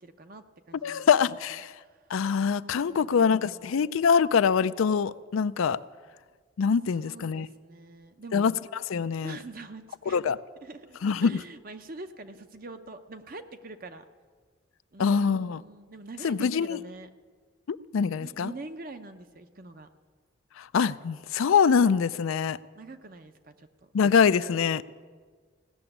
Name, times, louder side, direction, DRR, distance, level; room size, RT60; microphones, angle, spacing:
voice 1, 0.0-1.1 1.5-2.0 2.8-3.7 7.0-8.5 9.2-10.2 10.6-14.0 14.9-17.1 18.2-19.9 22.7-23.9, right 2 dB, 45° right, 0.8 m, -45 dB
voice 2, 0.8-1.7 2.1-5.8 6.6-7.5 8.3-8.5 8.9-9.4 10.1-10.4 11.0-11.4 15.0-15.6 16.2-16.8 17.7-18.5 20.6-22.6 23.9-24.8, left 6 dB, 80° left, 0.4 m, -24 dB
16.5 x 6.9 x 9.9 m
head